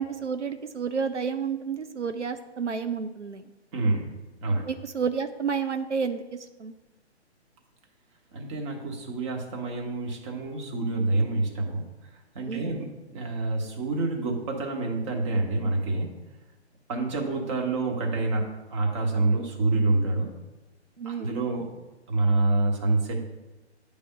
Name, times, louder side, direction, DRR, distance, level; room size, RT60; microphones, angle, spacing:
voice 1, 0.0-3.4 4.7-6.2 6.6-6.7 12.5-12.8 21.0-21.3, right 6 dB, 85° right, 8 dB, 0.6 m, -30 dB
voice 2, 3.7-4.1 4.4-4.7 8.3-11.8 12.3-16.1 16.9-20.3 21.0-21.7 22.1-23.2, right 2 dB, 25° right, 1 dB, 1.1 m, -27 dB
9.5 x 3.5 x 5.3 m, 1.1 s
figure-of-eight pair, 130°, 34 cm